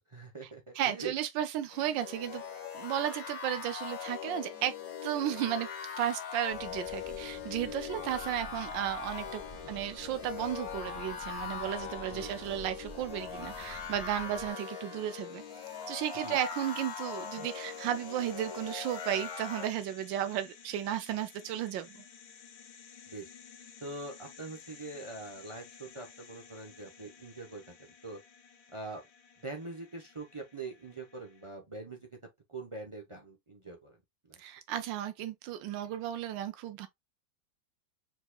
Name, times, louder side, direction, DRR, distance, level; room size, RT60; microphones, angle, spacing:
voice 1, 0.0-1.1 7.6-7.7 8.6-8.7 9.6-9.7 12.1-12.4 16.2-16.4 17.4-17.5 23.1-23.3 23.8-28.2 28.7-29.0 29.4-32.2 32.5-34.0 34.3-34.4, right 3 dB, 40° right, 0.4 m, -43 dB
voice 2, 0.7-2.4 2.7-4.7 5.0-5.7 6.0-9.4 9.7-15.4 15.9-22.0 34.4-36.9, right 11 dB, 85° right, 1.3 m, -34 dB
sound 1, 1.7-19.7, left 7 dB, 70° left, 2.0 m, -41 dB
sound 2, 6.5-14.5, right 1 dB, 15° left, 1.8 m, -51 dB
sound 3, 14.9-31.5, left 7 dB, 90° left, 1.6 m, -55 dB
4.6 x 4.1 x 2.2 m
omnidirectional pair, 2.0 m